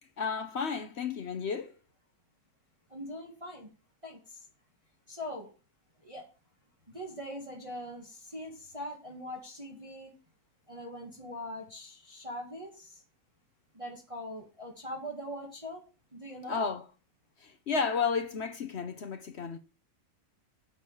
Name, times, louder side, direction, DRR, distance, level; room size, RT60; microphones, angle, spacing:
voice 1, 0.2-1.7 16.5-16.8 17.4-19.6, left 5 dB, 55° left, 0.7 m, -32 dB
voice 2, 2.9-3.7 4.0-4.5 5.1-5.5 6.0-6.2 6.9-10.2 10.7-13.0 13.7-15.8 16.1-16.7, equal, 20° right, 1.8 m, -42 dB
7.1 x 6.1 x 7.1 m
omnidirectional pair, 1.9 m